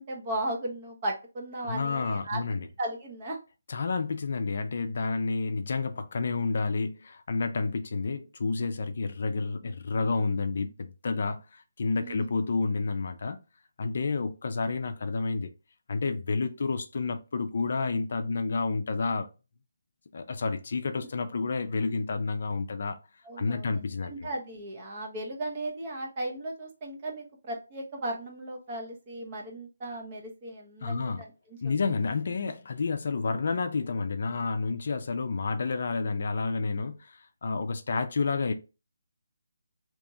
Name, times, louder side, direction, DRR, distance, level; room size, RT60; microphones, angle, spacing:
voice 1, 0.0-2.4 2.8-3.4 12.0-12.3 20.9-21.1 23.2-23.7 24.0-31.1 31.5-31.8, right 1 dB, 25° right, 0.8 m, -36 dB
voice 2, 1.6-2.7 3.7-13.4 13.8-15.5 15.9-19.3 20.1-23.0 23.4-24.3 30.8-31.2 31.6-38.5, left 4 dB, 55° left, 0.4 m, -30 dB
3.4 x 2.9 x 2.6 m
hypercardioid pair, 165°, 0 cm